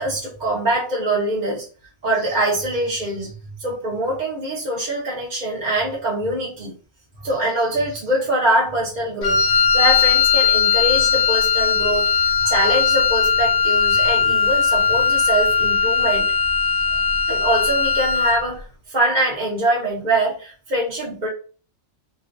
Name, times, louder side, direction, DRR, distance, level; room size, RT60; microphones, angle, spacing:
voice 1, 0.0-1.7 2.0-6.7 7.2-16.2 16.9-21.3, right 1 dB, 40° right, -4 dB, 1.0 m, -23 dB
Wind instrument woodwind instrument, 9.2-18.5, left 6 dB, 65° left, 0.9 m, -18 dB
3.0 x 3.0 x 2.6 m, 0.38 s
omnidirectional pair, 1.3 m